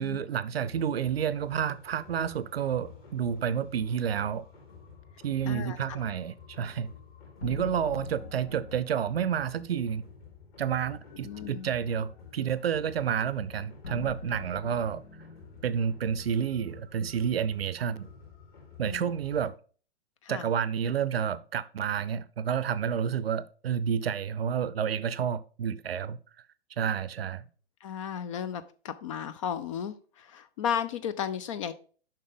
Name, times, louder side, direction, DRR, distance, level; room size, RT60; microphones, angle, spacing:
voice 1, 0.0-4.4 5.2-6.9 7.4-10.0 10.6-15.0 15.6-18.1 18.8-19.5 20.3-26.2 26.8-27.5, right 8 dB, 60° right, 0.7 m, -30 dB
sound 1, 0.7-19.6, left 6 dB, 45° left, 3.7 m, -51 dB
voice 2, 5.5-6.0 11.2-11.7 18.8-19.1 20.2-20.5 27.8-31.7, left 8 dB, 30° left, 0.5 m, -34 dB
sound 2, 7.4-9.6 13.8-17.1, left 3 dB, 80° left, 0.9 m, -43 dB
7.3 x 5.7 x 3.6 m
figure-of-eight pair, 115°, 33 cm